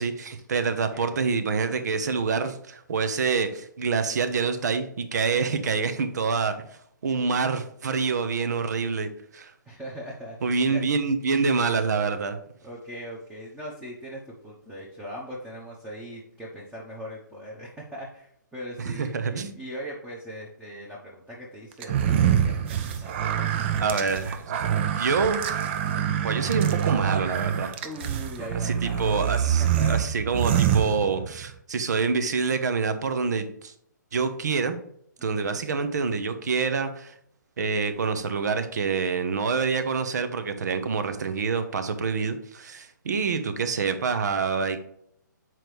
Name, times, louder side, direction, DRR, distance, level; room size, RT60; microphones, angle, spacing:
voice 1, 0.0-6.5 7.0-9.5 10.4-12.4 18.8-19.5 23.8-24.6 25.0-25.4 26.2-27.7 28.6-33.7 34.1-34.8 35.2-37.1 37.6-44.8, right 5 dB, 60° right, 10 dB, 0.9 m, -26 dB
voice 2, 0.9-1.3 9.6-10.8 12.6-24.0 25.8-26.2 27.8-29.3 29.6-30.0 35.2-35.6, equal, 5° right, -5 dB, 1.0 m, -40 dB
sound 1, 21.8-31.5, right 9 dB, 35° right, 0.6 m, -25 dB
7.5 x 4.6 x 3.3 m, 0.70 s
hypercardioid pair, 140°, 10 cm